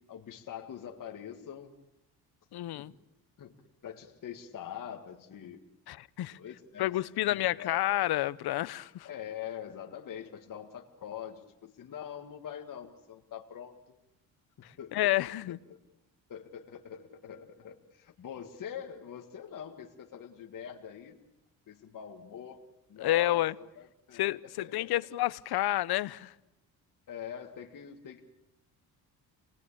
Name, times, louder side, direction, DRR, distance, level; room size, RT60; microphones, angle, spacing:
voice 1, 0.1-1.7 2.8-2.9 3.4-3.5 3.8-5.6 6.3-7.8 9.0-13.7 14.8-15.1 15.5-15.8 16.3-21.1 21.7-22.6 22.9-24.2 24.6-24.9 27.1-28.3, left 9 dB, 50° left, 2.0 m, -44 dB
voice 2, 2.5-2.9 5.9-6.4 6.8-9.1 14.9-15.6 23.0-23.5 24.1-26.3, left 15 dB, 65° left, 0.9 m, -29 dB
27.5 x 20.0 x 8.6 m
cardioid pair, 100°, 40 cm